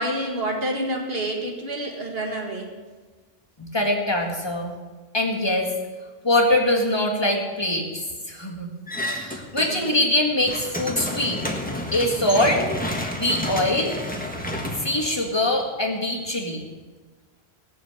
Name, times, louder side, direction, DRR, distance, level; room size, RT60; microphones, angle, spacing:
voice 1, 0.0-2.7 9.7-9.9, right 1 dB, 65° right, 1 dB, 2.0 m, -28 dB
voice 2, 3.6-4.7 5.1-5.7 6.2-8.7 9.1-11.4 11.9-12.7 13.1-13.9 14.8-16.6, left 1 dB, 25° left, -1 dB, 2.2 m, -23 dB
sound 1, 8.9-10.0 10.3-15.7, left 1 dB, 10° left, 1.6 m, -30 dB
17.5 x 7.0 x 8.3 m, 1.3 s
omnidirectional pair, 1.1 m